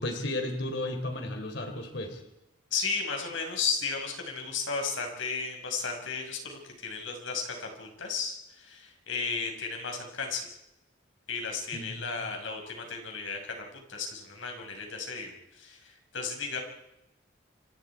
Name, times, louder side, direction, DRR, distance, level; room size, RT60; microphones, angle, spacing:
voice 1, 0.0-2.2 11.7-12.2, left 1 dB, 60° left, 6 dB, 3.7 m, -34 dB
voice 2, 2.7-10.5 11.3-16.6, left 5 dB, 80° left, 3 dB, 5.7 m, -34 dB
29.5 x 25.0 x 4.8 m, 0.88 s
head